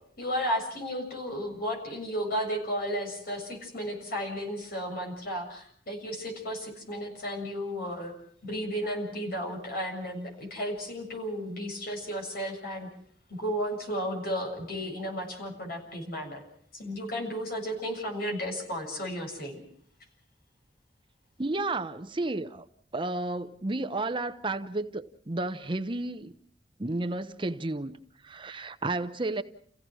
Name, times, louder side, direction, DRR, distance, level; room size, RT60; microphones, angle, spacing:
voice 1, 0.2-8.1 8.4-12.9 13.4-16.4 16.7-19.6, equal, 60° left, 7.2 m, -33 dB
voice 2, 21.4-22.6 22.9-26.3 26.8-28.0 28.2-29.4, right 2 dB, 30° right, 0.8 m, -32 dB
30.0 x 16.5 x 6.2 m
head